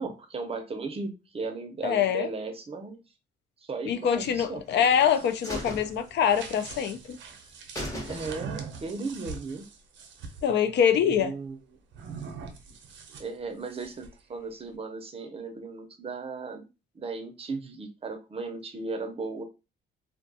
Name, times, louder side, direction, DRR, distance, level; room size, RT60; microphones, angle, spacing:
voice 1, 0.0-3.0 3.6-5.1 5.5-5.6 8.1-9.6 11.0-11.6 13.2-16.7 16.9-19.4, right 4 dB, 30° right, 0.5 m, -36 dB
voice 2, 1.8-2.3 3.8-7.2 10.4-11.3, left 8 dB, 65° left, 0.4 m, -24 dB
sound 1, 4.4-5.0 5.4-6.7 7.0-7.1 7.4-7.5 7.8-8.7 9.0-9.1, equal, 15° left, 1.0 m, -38 dB
sound 2, 4.7-10.5 11.9-14.2, right 5 dB, 70° right, 0.5 m, -43 dB
2.4 x 2.2 x 2.6 m
cardioid pair, 90°, 20 cm